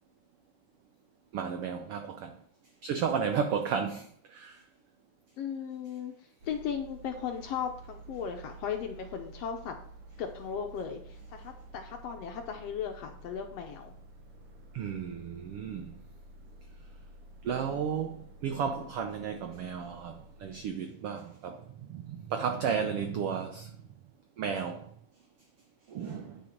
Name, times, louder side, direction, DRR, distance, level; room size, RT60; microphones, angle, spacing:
voice 1, 1.3-2.4 2.8-4.6 14.7-15.9 17.4-23.7 24.4-24.9 25.9-26.4, right 7 dB, 85° right, 1.3 m, -33 dB
voice 2, 5.4-6.1 6.4-9.8 10.2-13.9, left 7 dB, 75° left, 1.6 m, -36 dB
sound 1, 6.4-20.7, right 2 dB, 55° right, 2.0 m, -51 dB
9.4 x 6.1 x 4.5 m
omnidirectional pair, 3.4 m